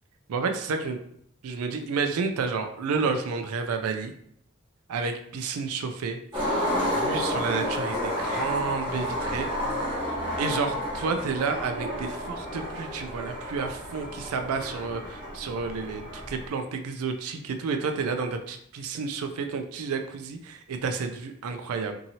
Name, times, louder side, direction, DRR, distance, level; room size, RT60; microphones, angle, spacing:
voice 1, 0.3-1.0 1.4-4.1 4.9-6.2 6.7-9.5 10.1-21.9, right 4 dB, 85° right, 6 dB, 0.4 m, -30 dB
Skateboard, 6.3-16.5, left 1 dB, 25° right, 1.3 m, -31 dB
2.8 x 2.7 x 2.7 m, 0.69 s
head